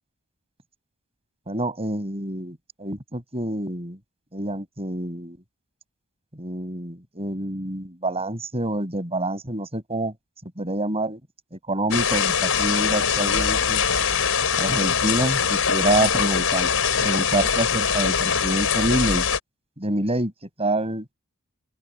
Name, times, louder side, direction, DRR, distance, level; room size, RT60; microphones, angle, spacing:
voice 1, 1.5-4.0 4.3-5.4 6.4-10.1 10.6-11.2 11.5-13.8 14.6-16.7 17.0-19.3 19.8-20.3 20.6-21.0, right 1 dB, 30° right, 7.2 m, -27 dB
sound 1, 11.9-19.4, left 6 dB, 70° left, 6.3 m, -22 dB
open air
head